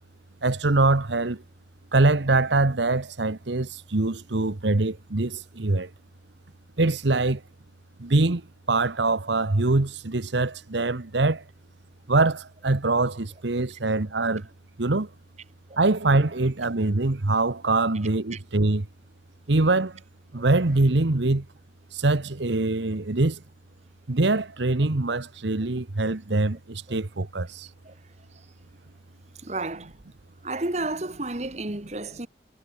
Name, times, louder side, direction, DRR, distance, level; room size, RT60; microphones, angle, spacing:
voice 1, 0.4-1.4 1.9-5.9 6.8-7.4 8.0-8.4 8.7-11.4 12.1-14.5 14.8-15.1 15.8-18.9 19.5-20.0 20.3-21.4 21.9-23.4 24.1-27.7, right 2 dB, 75° right, 1.2 m, -23 dB
voice 2, 29.4-29.9 30.4-32.3, right 2 dB, 35° right, 1.4 m, -31 dB
head